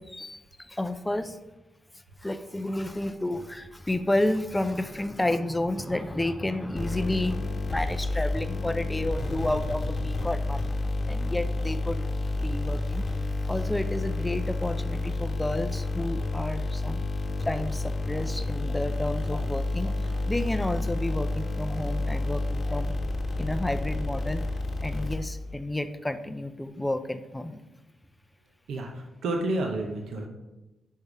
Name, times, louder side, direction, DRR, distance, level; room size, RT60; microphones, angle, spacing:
voice 1, 0.1-1.4 2.2-10.7 11.1-12.0 12.4-13.0 13.5-17.0 17.5-20.0 20.2-22.9 23.4-24.4 24.8-27.6, left 1 dB, 10° left, 10 dB, 0.4 m, -31 dB
sound 1, 6.8-25.5, left 2 dB, 35° left, 1.4 m, -30 dB
voice 2, 28.7-30.3, right 2 dB, 75° right, 2 dB, 0.7 m, -30 dB
5.4 x 5.2 x 4.7 m, 1.1 s
cardioid pair, 110°, 0 cm